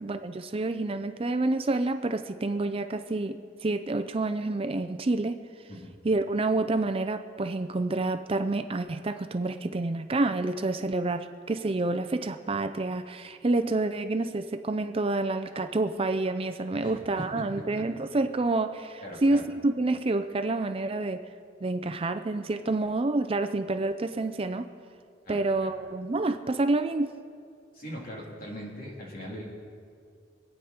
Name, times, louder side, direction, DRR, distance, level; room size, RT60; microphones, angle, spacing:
voice 1, 0.0-5.4 6.0-21.2 21.6-24.7 25.3-27.1, right 2 dB, 30° right, 9 dB, 0.5 m, -28 dB
voice 2, 16.8-17.9 19.0-19.4 25.2-25.7 27.7-29.5, equal, 50° left, -3 dB, 3.4 m, -40 dB
25.5 x 9.2 x 4.4 m, 2.3 s
head